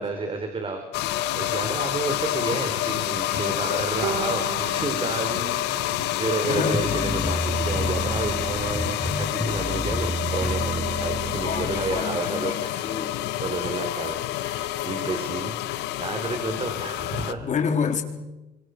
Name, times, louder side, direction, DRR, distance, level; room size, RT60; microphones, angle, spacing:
voice 1, 0.0-17.4, right 3 dB, 30° right, 4.3 m, -31 dB
sound 1, 0.9-17.3, left 14 dB, 90° left, 1.4 m, -28 dB
Bowed string instrument, 4.0-7.4, right 11 dB, 85° right, 1.3 m, -37 dB
voice 2, 6.5-6.9 11.4-13.2 17.4-18.0, left 6 dB, 45° left, 4.2 m, -28 dB
sound 2, 6.7-12.1, equal, 5° left, 1.8 m, -30 dB
27.5 x 25.5 x 6.7 m
cardioid pair, 110°, 17 cm